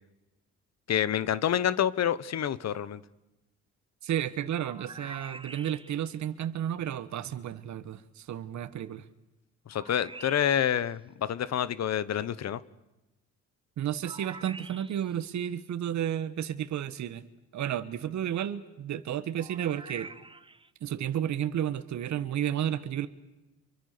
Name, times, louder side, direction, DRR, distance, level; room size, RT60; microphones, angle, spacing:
voice 1, 0.9-3.0 9.7-12.6, left 10 dB, 60° left, 1.2 m, -28 dB
voice 2, 4.0-9.0 13.8-17.2 17.5-20.1 20.8-23.1, right 10 dB, 70° right, 1.5 m, -32 dB
sound 1, 4.5-6.2 9.7-10.9 14.0-15.2 19.4-20.7, right 3 dB, 15° right, 1.2 m, -46 dB
29.5 x 24.5 x 6.8 m
cardioid pair, 90°, 30 cm